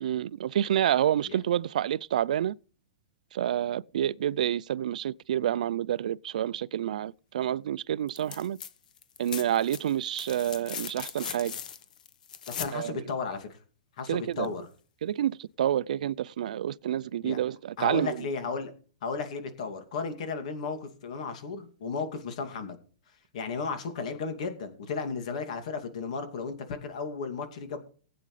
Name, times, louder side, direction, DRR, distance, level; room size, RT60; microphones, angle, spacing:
voice 1, 0.0-2.5 3.3-8.6 9.2-11.6 12.7-13.0 14.1-14.5 15.0-18.2, right 11 dB, 70° right, 0.4 m, -28 dB
sound 1, 8.1-8.7 9.0-12.8 14.4-14.5, left 8 dB, 75° left, 1.2 m, -39 dB
voice 2, 12.5-13.6 14.0-14.7 17.2-17.4 17.8-18.7 19.0-22.8 23.3-27.9, left 5 dB, 55° left, 2.5 m, -34 dB
20.0 x 8.6 x 3.3 m
hypercardioid pair, 160°, 4 cm